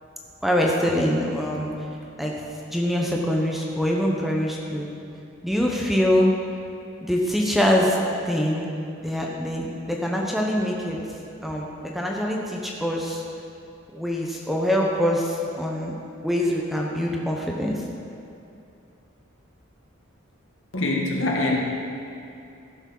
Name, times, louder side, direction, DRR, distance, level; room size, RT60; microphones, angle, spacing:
voice 1, 0.4-1.7 2.2-2.3 2.7-4.9 5.4-6.3 7.0-8.0 8.3-8.6 9.0-11.0 11.4-13.2 13.9-15.9 16.2-17.8, equal, ahead, -2 dB, 0.9 m, -24 dB
voice 2, 20.7-21.6, left 2 dB, 75° left, -2 dB, 1.9 m, -23 dB
15.0 x 7.1 x 5.5 m, 2.6 s
head